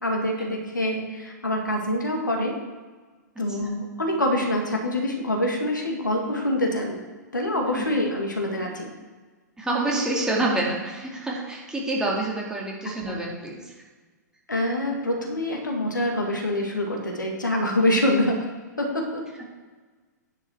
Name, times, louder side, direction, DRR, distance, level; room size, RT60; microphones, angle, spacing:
voice 1, 0.0-2.6 3.4-7.0 7.3-8.9 12.8-13.2 14.5-18.4 18.8-19.2, left 1 dB, 85° left, 0 dB, 2.2 m, -25 dB
voice 2, 3.4-3.7 7.7-7.9 9.6-13.7, right 2 dB, 5° right, -3 dB, 2.3 m, -27 dB
10.0 x 6.9 x 4.7 m, 1.4 s
figure-of-eight pair, 110°, 10 cm